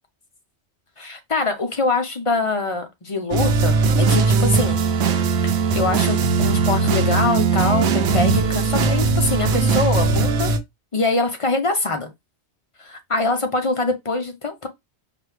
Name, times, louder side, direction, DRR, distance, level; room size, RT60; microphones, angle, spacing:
voice 1, 1.0-4.8 5.1-10.5 10.9-12.1 12.8-14.7, left 3 dB, 35° left, 0.6 m, -24 dB
sound 1, 3.3-10.6, right 4 dB, 70° right, 0.9 m, -19 dB
4.8 x 2.3 x 3.2 m
omnidirectional pair, 1.2 m